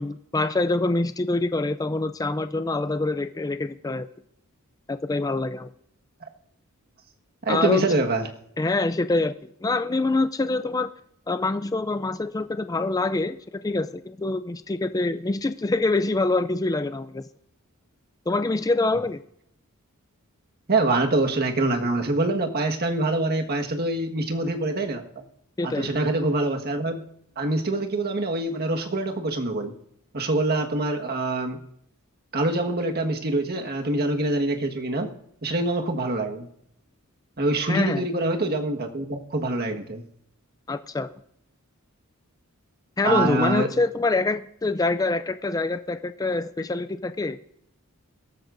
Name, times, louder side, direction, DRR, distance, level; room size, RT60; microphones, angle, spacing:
voice 1, 0.0-4.1 4.9-5.7 7.5-7.8 8.6-10.9 11.3-17.2 18.3-19.2 25.6-25.9 37.7-38.1 40.7-41.1 43.0-47.5, left 2 dB, 15° left, 11 dB, 0.4 m, -25 dB
voice 2, 7.4-8.3 20.7-25.0 25.6-27.0 27.4-29.7 30.1-31.6 32.3-35.1 35.4-36.5 37.4-40.1 43.0-43.7, right 2 dB, 45° right, 3 dB, 1.5 m, -25 dB
22.5 x 13.0 x 2.6 m, 0.72 s
head